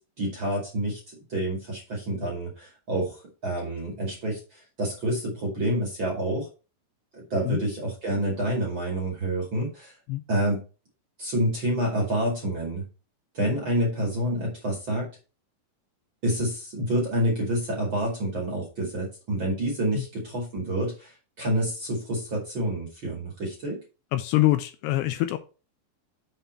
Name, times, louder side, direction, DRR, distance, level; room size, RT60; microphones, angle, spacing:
voice 1, 0.2-6.5 7.1-9.9 10.3-10.6 11.2-12.8 13.3-15.1 16.2-23.8, right 1 dB, 35° right, -2 dB, 2.2 m, -28 dB
voice 2, 24.1-25.4, left 16 dB, 80° left, 9 dB, 2.6 m, -24 dB
7.0 x 5.7 x 4.4 m, 0.33 s
omnidirectional pair, 5.1 m